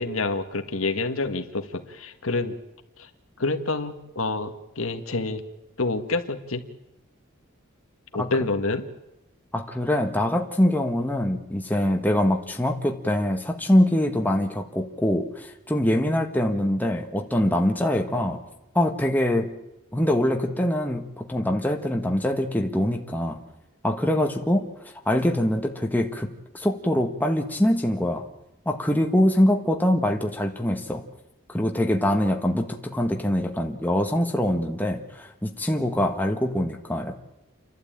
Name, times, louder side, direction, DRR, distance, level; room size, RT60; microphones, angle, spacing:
voice 1, 0.0-2.6 3.0-3.1 3.4-5.4 5.8-6.6 8.1-8.8, left 3 dB, 75° left, 7 dB, 1.8 m, -27 dB
voice 2, 9.5-18.4 18.7-19.5 19.9-23.4 23.8-24.7 25.0-26.3 26.5-28.3 28.6-31.0 31.5-37.2, left 1 dB, 10° left, 3 dB, 1.5 m, -24 dB
30.0 x 12.0 x 8.9 m, 0.97 s
head